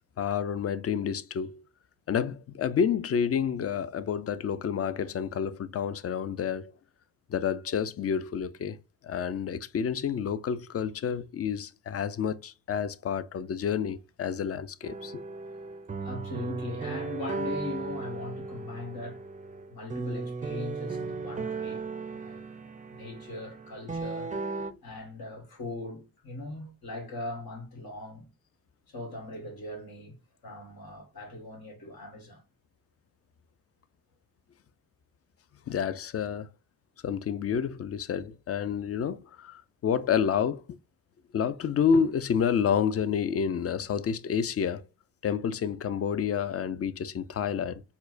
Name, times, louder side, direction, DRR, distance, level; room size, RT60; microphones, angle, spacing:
voice 1, 0.2-1.6 2.1-6.7 7.3-8.8 9.0-15.2 35.7-36.5 37.0-40.8 41.3-44.8 45.2-47.8, left 7 dB, 40° left, 0.4 m, -29 dB
sound 1, 14.8-24.7, right 4 dB, 20° right, 0.4 m, -36 dB
voice 2, 16.0-19.2 19.7-21.8 22.2-22.4 22.9-24.3 24.8-28.3 28.9-30.1 30.4-32.4, left 2 dB, 80° left, 1.6 m, -40 dB
4.3 x 2.1 x 2.5 m
cardioid pair, 60°, 36 cm